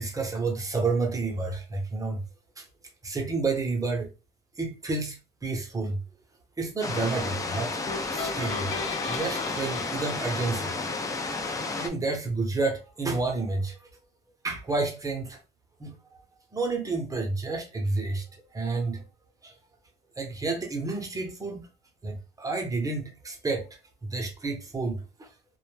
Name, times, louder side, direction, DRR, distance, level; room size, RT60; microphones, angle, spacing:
voice 1, 0.0-2.2 2.6-2.7 3.0-4.1 4.6-6.0 6.6-7.8 8.1-8.7 9.1-10.7 11.8-13.8 14.4-15.4 15.8-16.0 16.5-19.0 19.4-19.5 20.2-21.7 22.0-23.7 24.0-25.3, right 3 dB, 20° right, 0.7 m, -30 dB
sound 1, 6.8-11.9, left 3 dB, 20° left, 0.4 m, -32 dB
sound 2, 7.9-11.1, left 4 dB, 85° left, 0.7 m, -37 dB
2.2 x 2.1 x 3.1 m
cardioid pair, 110°, 17 cm